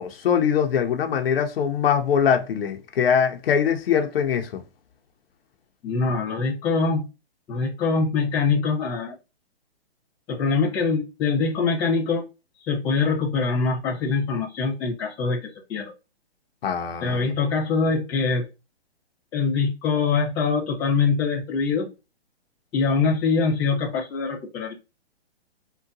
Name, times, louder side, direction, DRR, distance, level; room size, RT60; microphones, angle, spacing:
voice 1, 0.0-4.6 16.6-17.2, left 7 dB, 60° left, 0.6 m, -22 dB
voice 2, 5.8-7.0 7.5-9.1 10.3-12.2 12.6-15.9 17.0-18.4 19.3-21.9 22.7-24.7, left 4 dB, 15° left, 0.8 m, -23 dB
3.7 x 2.2 x 2.6 m
hypercardioid pair, 150°, 32 cm